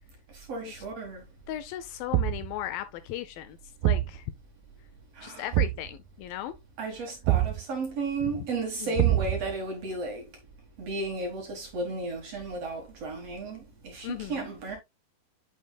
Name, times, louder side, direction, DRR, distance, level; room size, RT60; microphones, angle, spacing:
voice 1, 0.3-1.2 5.2-5.5 6.8-10.2 10.8-14.8, right 3 dB, 50° right, 2.2 m, -34 dB
voice 2, 1.5-3.6 3.8-4.3 5.2-6.6 8.2-8.5 8.8-8.9 14.0-14.5, left 12 dB, 80° left, 2.2 m, -36 dB
Thump thud, 2.1-2.6 3.8-4.2 5.5-5.9 7.3-7.6 9.0-9.5, right 15 dB, 80° right, 2.3 m, -24 dB
9.1 x 6.4 x 2.3 m
omnidirectional pair, 4.4 m